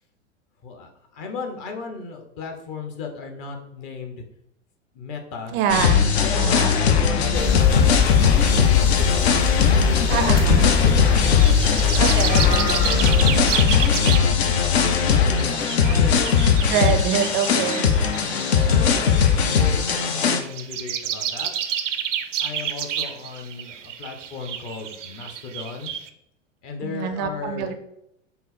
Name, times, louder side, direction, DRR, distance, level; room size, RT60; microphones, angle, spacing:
voice 1, 0.6-4.2 4.9-5.6 6.2-9.4 10.1-14.3 14.7-16.3 17.7-21.5 22.4-25.9 26.6-27.7, left 4 dB, 40° left, 3 dB, 1.0 m, -35 dB
voice 2, 5.5-6.7 10.1-10.7 12.0-12.7 16.7-17.8 26.8-27.7, right 8 dB, 30° right, 8 dB, 0.5 m, -25 dB
sound 1, 5.7-20.4, left 7 dB, 60° left, 0.7 m, -19 dB
sound 2, 7.3-13.4, left 5 dB, 25° left, 0.6 m, -23 dB
sound 3, 11.0-26.1, right 9 dB, 75° right, 0.5 m, -31 dB
5.5 x 2.0 x 4.2 m, 0.76 s
figure-of-eight pair, 95°, 37 cm